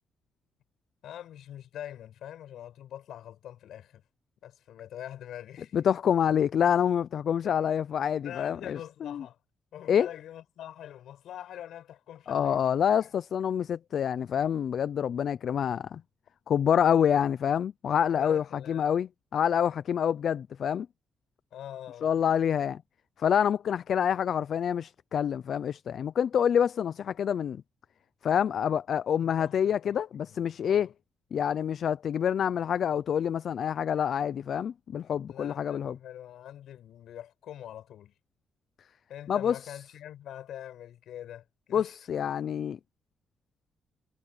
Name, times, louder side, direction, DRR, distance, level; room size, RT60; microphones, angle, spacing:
voice 1, 1.0-4.0 4.4-5.8 7.4-7.5 8.2-9.4 9.7-12.6 13.0-13.1 18.0-18.9 21.5-22.2 29.2-30.0 30.3-30.9 35.3-38.1 39.1-41.9, left 11 dB, 75° left, 7.6 m, -44 dB
voice 2, 5.7-9.2 9.9-10.1 12.3-16.0 16.5-20.9 22.0-22.8 23.2-27.6 28.2-30.9 31.3-36.0 39.3-39.6 41.7-42.8, left 8 dB, 55° left, 0.4 m, -27 dB
cardioid pair, 130°, 0 cm